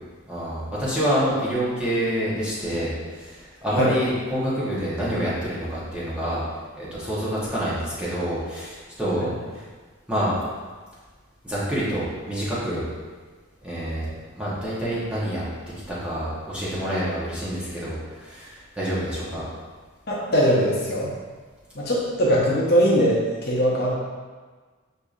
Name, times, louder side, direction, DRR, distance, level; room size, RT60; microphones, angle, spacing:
voice 1, 0.3-6.4 6.7-9.3 9.5-9.6 10.1-10.3 11.4-12.8 13.6-14.1 14.3-15.4 15.9-19.4, equal, 5° right, -9 dB, 0.9 m, -27 dB
voice 2, 20.1-21.1 21.7-23.9, equal, 45° left, -5 dB, 0.7 m, -21 dB
6.4 x 2.7 x 2.4 m, 1.4 s
head